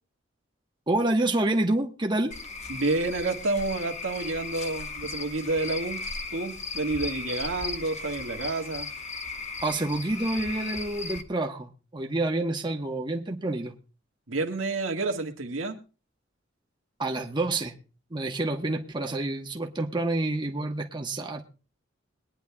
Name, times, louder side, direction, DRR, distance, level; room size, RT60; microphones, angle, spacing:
voice 1, 0.9-2.3 9.6-13.7 17.0-17.7 18.1-21.5, right 2 dB, 25° right, 2 dB, 1.1 m, -28 dB
Cricket / Frog, 2.3-11.2, left 4 dB, 35° left, 1.1 m, -37 dB
voice 2, 2.7-6.0 6.3-8.9 14.3-15.8, right 2 dB, 85° right, 3 dB, 1.6 m, -29 dB
22.0 x 10.0 x 2.3 m, 0.33 s
head